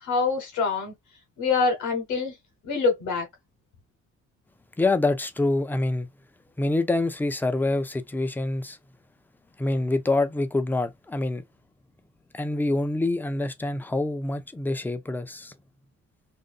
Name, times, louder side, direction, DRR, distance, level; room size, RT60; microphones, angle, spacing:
voice 1, 0.0-0.9 1.4-2.3 2.6-3.3, left 4 dB, 80° left, 1.0 m, -25 dB
voice 2, 4.8-6.1 6.6-8.8 9.6-11.4 12.3-15.5, left 2 dB, 5° left, 0.4 m, -26 dB
2.6 x 2.2 x 2.3 m
cardioid pair, 90°, 30 cm